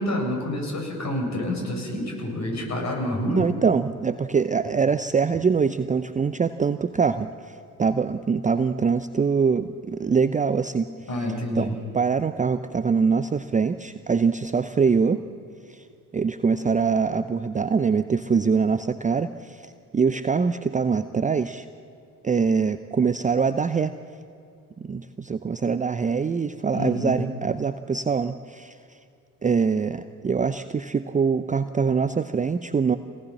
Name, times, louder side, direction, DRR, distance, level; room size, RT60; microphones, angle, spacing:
voice 1, 0.0-3.4 11.1-11.7 26.7-27.2, left 1 dB, 35° left, 1 dB, 7.7 m, -28 dB
voice 2, 3.3-10.9 11.5-11.7 11.9-15.2 15.7-15.9 16.1-21.7 22.2-23.9 24.9-28.8 29.4-33.0, right 5 dB, 15° right, 11 dB, 0.7 m, -23 dB
25.5 x 18.5 x 7.5 m, 2.3 s
figure-of-eight pair, 55°, 46 cm